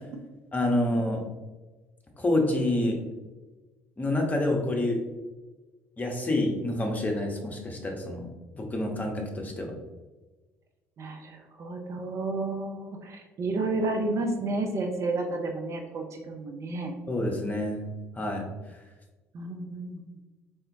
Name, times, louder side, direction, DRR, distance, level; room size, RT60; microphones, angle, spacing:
voice 1, 0.5-1.3 2.2-3.0 4.0-5.0 6.0-8.3 8.5-9.7 17.1-17.8 18.2-18.5, left 1 dB, 25° left, 1 dB, 1.0 m, -27 dB
voice 2, 11.0-16.9 19.3-20.1, right 2 dB, 45° right, 3 dB, 0.6 m, -31 dB
4.2 x 3.5 x 2.6 m, 1.2 s
figure-of-eight pair, 55°, 7 cm